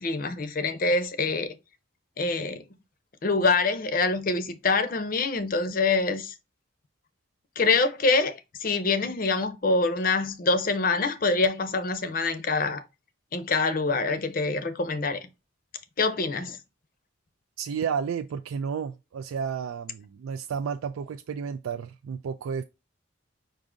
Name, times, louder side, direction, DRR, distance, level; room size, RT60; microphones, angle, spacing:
voice 1, 0.0-1.5 2.2-2.6 3.2-6.3 7.6-12.8 13.3-15.3 16.0-16.6, left 3 dB, 45° left, 0.6 m, -25 dB
voice 2, 17.6-22.6, right 6 dB, 90° right, 0.3 m, -32 dB
4.9 x 2.6 x 3.6 m
head